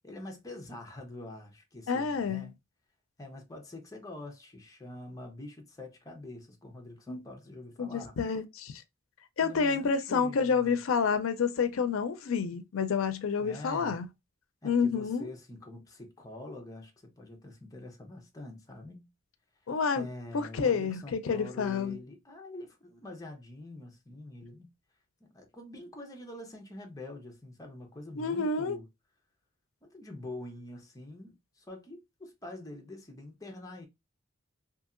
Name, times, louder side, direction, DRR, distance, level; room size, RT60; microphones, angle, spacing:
voice 1, 0.0-2.6 3.2-8.2 9.4-10.8 13.4-14.0 14.6-19.1 19.9-24.7 25.2-28.9 29.8-33.9, left 2 dB, 20° left, 0.7 m, -45 dB
voice 2, 1.9-2.5 7.1-7.2 7.8-8.8 9.4-14.1 14.6-15.3 19.7-20.1 20.3-22.0 28.2-28.8, left 5 dB, 85° left, 0.5 m, -29 dB
2.7 x 2.7 x 2.4 m
head